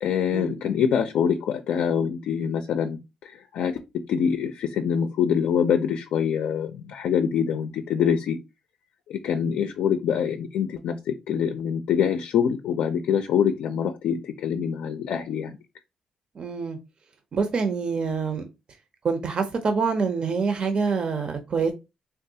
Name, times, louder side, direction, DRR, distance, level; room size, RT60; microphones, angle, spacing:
voice 1, 0.0-8.4 9.1-15.5, left 8 dB, 85° left, 0.4 m, -25 dB
voice 2, 16.4-16.8 17.3-18.5 19.0-21.7, right 5 dB, 50° right, 0.5 m, -26 dB
3.5 x 2.3 x 2.7 m
cardioid pair, 95°, 2 cm